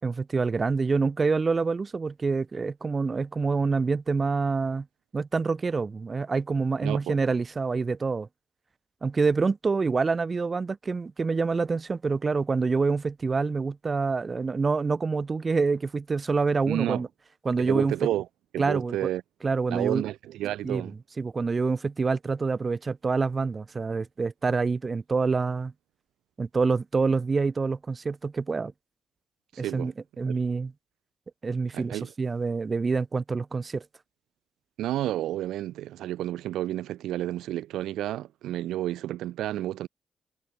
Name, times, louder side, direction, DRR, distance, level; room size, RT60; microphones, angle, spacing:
voice 1, 0.0-4.9 5.1-8.3 9.0-17.1 17.4-17.9 18.6-19.1 19.4-20.0 20.6-20.8 21.2-25.7 26.4-28.7 29.6-29.9 30.2-30.7 31.4-33.8, right 4 dB, 40° right, 1.4 m, -26 dB
voice 2, 6.8-7.2 16.7-17.0 17.6-18.2 18.5-19.2 19.7-20.9 29.5-29.9 31.7-32.1 34.8-39.9, right 13 dB, 85° right, 1.1 m, -30 dB
supercardioid pair, 50°, 0 cm